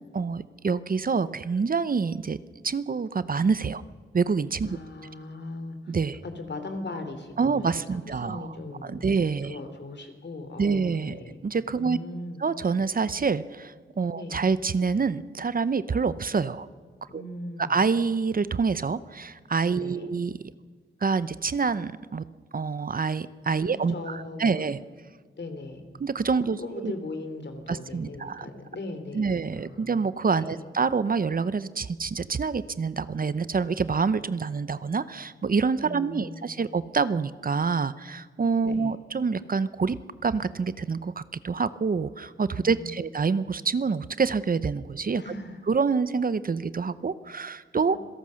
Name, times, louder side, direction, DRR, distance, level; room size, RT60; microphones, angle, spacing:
voice 1, 0.1-2.4 2.6-3.8 4.1-4.8 5.9-6.2 7.4-8.5 8.8-9.6 10.6-11.2 11.4-12.0 12.4-16.7 17.1-17.2 17.7-20.3 21.0-22.2 22.5-24.8 26.0-26.9 27.7-28.5 29.1-45.2 45.7-48.0, right 5 dB, 45° right, 15 dB, 0.7 m, -27 dB
voice 2, 4.7-6.0 6.2-9.1 9.4-11.4 11.8-12.4 14.2-14.4 17.1-17.8 19.8-20.1 23.6-24.6 25.4-25.8 26.6-29.9 30.3-30.7 35.8-36.6 38.6-39.0 42.5-43.0 45.2-45.6 47.8-48.0, left 2 dB, 60° left, 7 dB, 3.1 m, -39 dB
26.5 x 17.0 x 6.4 m, 1.5 s
wide cardioid pair, 80°, 20 cm